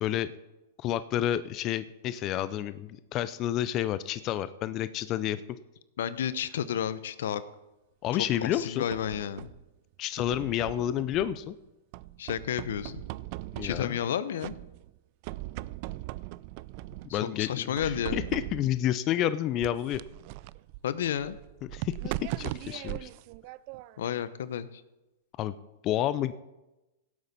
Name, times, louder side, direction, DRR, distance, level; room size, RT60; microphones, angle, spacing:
voice 1, 0.0-0.3 0.8-5.4 8.0-8.9 10.0-11.5 13.6-14.0 17.1-20.0 21.7-23.1 25.4-25.6 25.8-26.3, left 12 dB, 35° left, 14 dB, 0.5 m, -30 dB
voice 2, 6.0-7.4 8.4-9.5 12.2-13.0 13.6-14.6 17.1-18.3 20.8-21.4 24.0-24.7, left 9 dB, 75° left, 15 dB, 0.7 m, -31 dB
sound 1, 8.4-9.7 10.2-11.5 11.9-14.1 14.4-15.0 15.2-17.2 17.8-18.8 19.6-24.1, right 17 dB, 50° right, 0.3 m, -39 dB
17.0 x 8.2 x 4.1 m, 1.0 s
hypercardioid pair, 125°, 0 cm